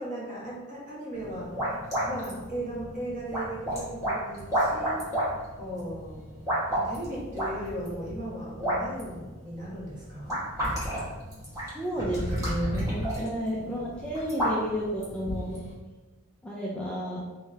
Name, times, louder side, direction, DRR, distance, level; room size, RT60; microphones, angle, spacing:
voice 1, 0.0-5.0 5.6-6.2 6.7-10.4, right 1 dB, 35° right, -6 dB, 1.3 m, -37 dB
sound 1, 1.1-15.7, equal, 15° right, 1.3 m, -32 dB
voice 2, 11.7-15.6 16.4-17.2, equal, 5° left, -6 dB, 0.4 m, -31 dB
3.6 x 3.3 x 3.2 m, 1.2 s
head